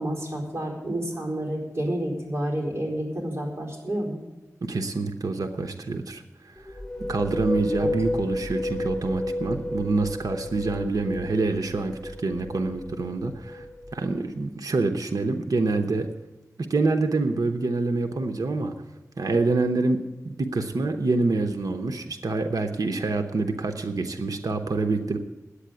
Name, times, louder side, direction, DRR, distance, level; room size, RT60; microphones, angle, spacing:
voice 1, 0.0-4.2 7.8-7.9, right 1 dB, 45° right, -1 dB, 4.4 m, -29 dB
voice 2, 4.6-6.7 7.1-13.6 13.9-16.1 16.6-18.7 19.2-25.2, right 3 dB, 80° right, 5 dB, 0.9 m, -26 dB
sound 1, 6.6-14.2, left 1 dB, 10° left, 2.8 m, -32 dB
10.0 x 8.4 x 9.2 m, 1.1 s
cardioid pair, 45°, 6 cm